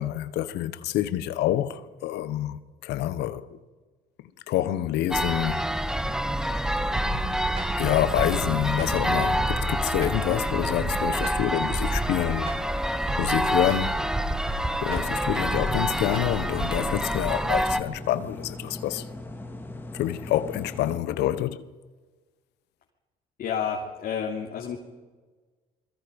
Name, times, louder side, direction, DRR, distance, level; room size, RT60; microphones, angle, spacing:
voice 1, 0.0-3.6 4.5-5.7 7.8-12.5 13.2-14.0 14.8-19.1 19.9-21.7, left 13 dB, 85° left, 1.2 m, -27 dB
sound 1, 5.1-17.8, equal, 5° right, 1.3 m, -27 dB
sound 2, 7.0-16.8, right 1 dB, 35° right, 6.0 m, -35 dB
sound 3, 15.0-21.0, left 2 dB, 10° left, 2.7 m, -39 dB
voice 2, 23.4-24.8, left 7 dB, 60° left, 3.2 m, -30 dB
28.5 x 22.0 x 5.4 m
cardioid pair, 110°, 17 cm